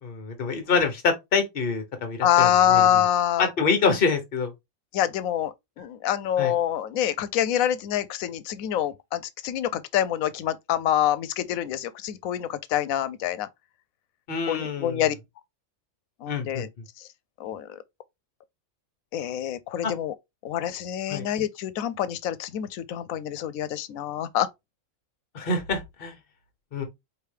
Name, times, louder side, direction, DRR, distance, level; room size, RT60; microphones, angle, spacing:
voice 1, 0.0-3.0 3.4-4.5 6.4-6.5 14.3-15.0 16.3-16.6 19.8-19.9 21.1-21.3 25.3-26.1 26.7-26.9, left 5 dB, 45° left, 1.2 m, -26 dB
voice 2, 2.2-3.5 4.9-13.5 14.5-15.2 16.2-16.7 17.0-17.1 17.4-17.8 19.1-20.1 20.4-24.5, left 11 dB, 90° left, 1.0 m, -26 dB
4.8 x 2.8 x 3.3 m
omnidirectional pair, 1.4 m